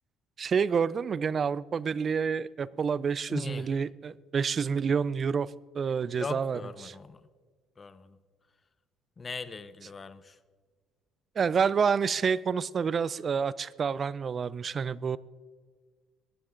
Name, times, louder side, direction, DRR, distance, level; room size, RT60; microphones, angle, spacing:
voice 1, 0.4-6.9 11.4-15.2, right 6 dB, 35° right, 20 dB, 0.3 m, -28 dB
voice 2, 3.3-3.7 6.1-7.2 7.8-8.2 9.2-10.4, left 4 dB, 25° left, 14 dB, 0.7 m, -39 dB
18.0 x 9.9 x 3.8 m, 1.5 s
cardioid pair, 125°, 0 cm